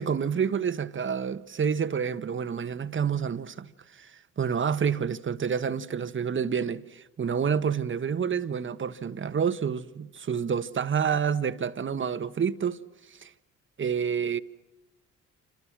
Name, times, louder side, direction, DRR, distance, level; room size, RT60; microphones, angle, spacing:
voice 1, 0.0-12.8 13.1-13.3 13.8-14.4, right 7 dB, 40° right, 1.4 m, -28 dB
28.5 x 26.5 x 6.2 m
cardioid pair, 90°, 30 cm